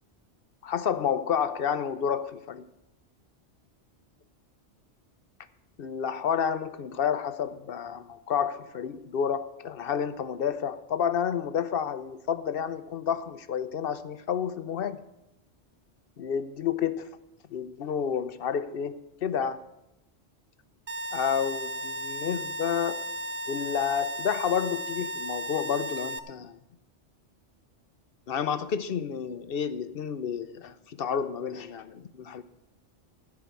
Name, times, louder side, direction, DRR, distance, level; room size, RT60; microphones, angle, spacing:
voice 1, 0.6-2.7 5.8-15.0 16.2-17.1 17.5-19.6 21.1-23.1 23.5-26.6 28.3-32.4, left 8 dB, 60° left, 0.8 m, -30 dB
sound 1, 20.9-26.2, right 1 dB, 40° right, 0.6 m, -35 dB
14.0 x 4.9 x 8.2 m
omnidirectional pair, 1.2 m